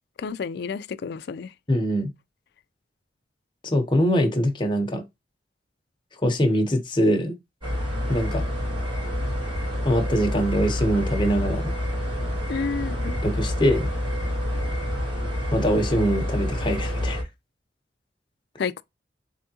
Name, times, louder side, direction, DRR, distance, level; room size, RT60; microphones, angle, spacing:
voice 1, 0.2-1.5 12.5-13.2 18.6-18.8, left 5 dB, 65° left, 0.4 m, -30 dB
voice 2, 1.7-2.1 3.6-5.0 6.2-7.3 8.1-8.5 9.8-11.7 13.2-13.9 15.5-17.2, equal, 25° left, 0.9 m, -23 dB
sound 1, 7.6-17.2, left 1 dB, 30° right, 1.9 m, -27 dB
3.5 x 3.4 x 2.8 m
head